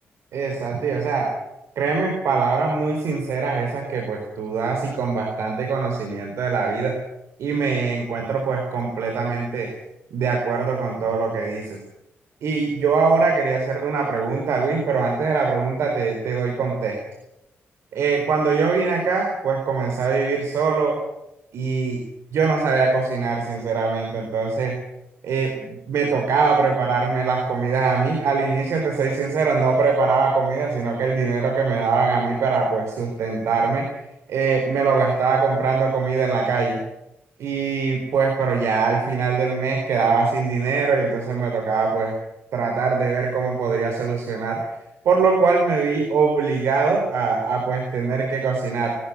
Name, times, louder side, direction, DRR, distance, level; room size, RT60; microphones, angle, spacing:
voice 1, 0.3-1.3 1.8-7.0 7.4-9.7 10.1-11.8 12.4-17.0 17.9-21.0 21.5-22.0 22.3-24.8 25.2-33.9 34.3-36.8 37.4-42.2 42.5-44.7 45.0-49.0, right 4 dB, 80° right, 2 dB, 4.4 m, -22 dB
20.5 x 14.0 x 9.6 m, 0.86 s
cardioid pair, 95°, 5 cm